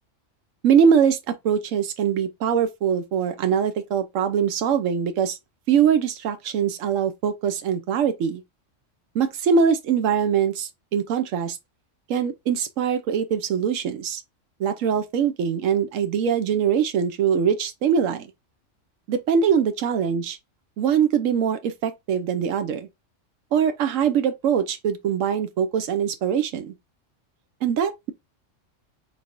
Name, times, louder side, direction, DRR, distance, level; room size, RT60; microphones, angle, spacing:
voice 1, 0.6-5.4 5.7-8.4 9.1-11.6 12.1-14.2 14.6-18.3 19.1-20.4 20.8-22.9 23.5-26.7 27.6-28.1, right 7 dB, 90° right, 1.0 m, -22 dB
3.7 x 3.3 x 2.5 m
omnidirectional pair, 1.3 m